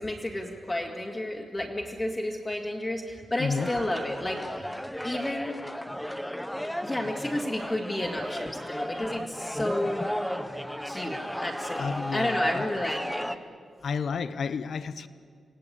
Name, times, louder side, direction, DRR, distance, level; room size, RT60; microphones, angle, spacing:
voice 1, 0.0-4.7 5.0-5.6 6.8-10.0 10.8-13.4, left 1 dB, 20° left, 2.2 m, -31 dB
voice 2, 3.4-3.7 11.8-12.7 13.8-15.1, left 5 dB, 65° left, 0.8 m, -31 dB
sound 1, 3.6-13.4, equal, 5° left, 0.8 m, -34 dB
28.0 x 18.0 x 8.9 m
wide cardioid pair, 160°, 0 cm